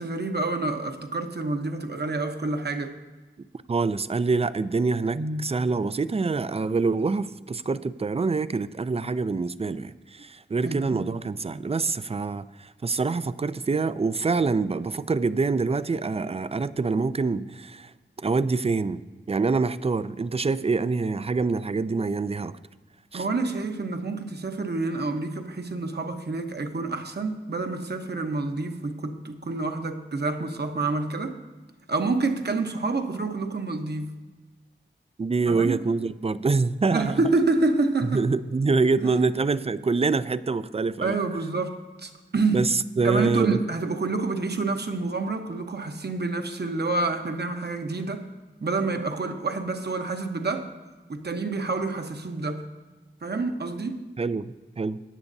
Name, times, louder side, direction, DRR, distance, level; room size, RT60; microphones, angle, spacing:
voice 1, 0.0-3.0 5.1-5.5 10.6-11.1 23.1-31.4 31.9-34.1 35.5-35.8 36.9-38.3 39.0-39.1 41.0-42.6 43.0-48.3 48.6-50.7 51.1-52.6 53.2-54.1, right 3 dB, 55° right, 1.0 m, -28 dB
voice 2, 3.7-17.9 18.2-19.0 19.3-22.6 23.1-23.2 35.2-37.2 38.0-41.2 42.5-43.6 54.2-55.0, right 4 dB, 30° right, 0.4 m, -25 dB
16.5 x 9.9 x 2.7 m
wide cardioid pair, 70°, 20 cm